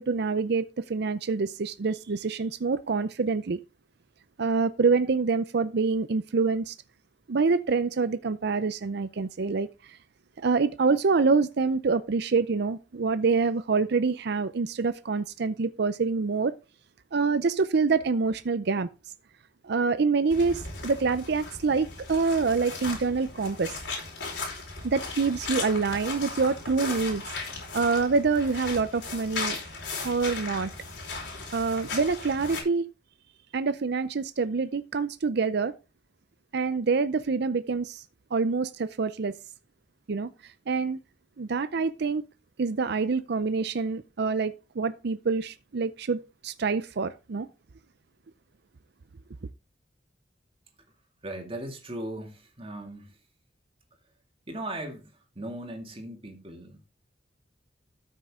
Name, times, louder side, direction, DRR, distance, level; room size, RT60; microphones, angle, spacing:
voice 1, 0.0-3.6 4.4-6.8 7.3-10.0 10.4-16.6 17.1-18.9 19.6-23.8 24.8-27.2 27.7-29.6 30.0-30.7 31.5-32.9 33.5-35.7 36.5-38.0 38.3-39.4 40.1-41.0 41.4-42.2 42.6-47.5, right 4 dB, 65° right, 0.5 m, -26 dB
sound 1, 20.3-32.6, left 3 dB, 70° left, 4.7 m, -37 dB
voice 2, 51.2-53.2 54.5-56.8, right 1 dB, 30° right, 2.4 m, -38 dB
13.0 x 6.5 x 3.7 m
head